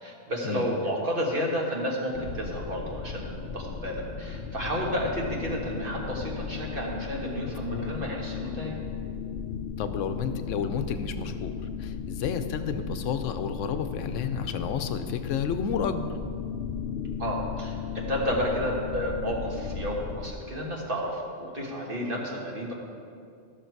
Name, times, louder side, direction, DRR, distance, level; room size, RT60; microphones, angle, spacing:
voice 1, 0.0-8.7 17.2-22.7, equal, 45° right, -2 dB, 1.6 m, -31 dB
sound 1, 2.1-20.3, left 6 dB, 55° left, 0.8 m, -36 dB
voice 2, 9.8-16.1, left 6 dB, 80° left, 9 dB, 1.0 m, -31 dB
13.5 x 6.4 x 4.6 m, 2.3 s
omnidirectional pair, 1.3 m